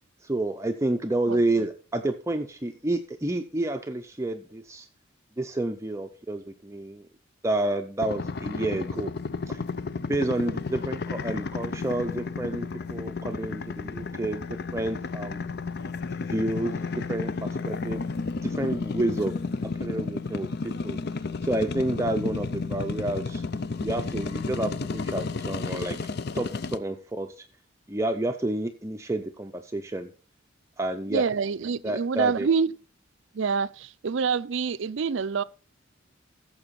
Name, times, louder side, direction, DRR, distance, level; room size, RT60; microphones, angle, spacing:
voice 1, 0.2-4.9 5.4-7.1 7.4-9.1 9.5-9.6 10.1-14.4 14.7-15.5 16.2-18.2 18.4-19.3 19.6-21.0 21.4-23.4 23.8-27.5 27.9-30.1 30.8-31.2 31.8-32.5, right 1 dB, 15° right, 0.5 m, -30 dB
sound 1, 8.0-26.8, left 4 dB, 50° left, 0.5 m, -32 dB
voice 2, 31.1-32.7 33.3-35.4, right 5 dB, 65° right, 0.5 m, -26 dB
14.0 x 7.1 x 4.2 m
head